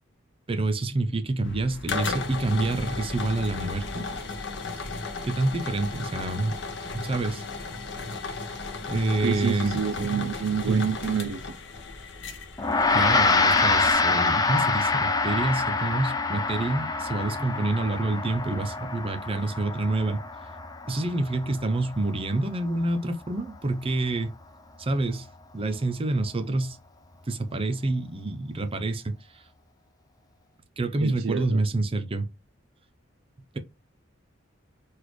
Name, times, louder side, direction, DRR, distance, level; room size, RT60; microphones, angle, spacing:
voice 1, 0.5-4.1 5.2-6.6 6.9-7.4 8.9-10.3 10.7-10.9 12.9-20.2 20.9-24.3 24.8-25.3 25.5-26.8 27.3-29.2 30.8-32.3, right 2 dB, 30° right, 0.6 m, -27 dB
sound 1, 1.4-13.9, left 3 dB, 60° left, 0.7 m, -35 dB
voice 2, 9.2-11.4 31.0-31.6, right 7 dB, 80° right, 0.5 m, -28 dB
Gong, 12.6-22.1, left 3 dB, 20° left, 0.4 m, -26 dB
4.0 x 2.4 x 3.0 m
head